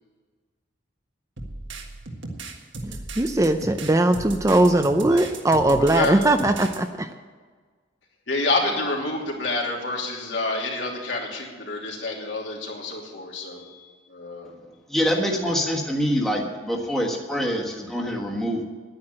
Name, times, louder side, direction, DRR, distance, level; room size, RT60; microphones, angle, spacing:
sound 1, 1.4-6.8, right 3 dB, 70° right, 1.6 m, -36 dB
voice 1, 2.8-7.1, right 1 dB, 15° right, 7 dB, 0.5 m, -20 dB
voice 2, 5.8-6.3 8.3-14.5 15.4-15.5, left 2 dB, 70° left, -1 dB, 2.9 m, -28 dB
voice 3, 14.9-18.6, equal, ahead, -2 dB, 1.4 m, -25 dB
10.5 x 9.8 x 7.7 m, 1.5 s
head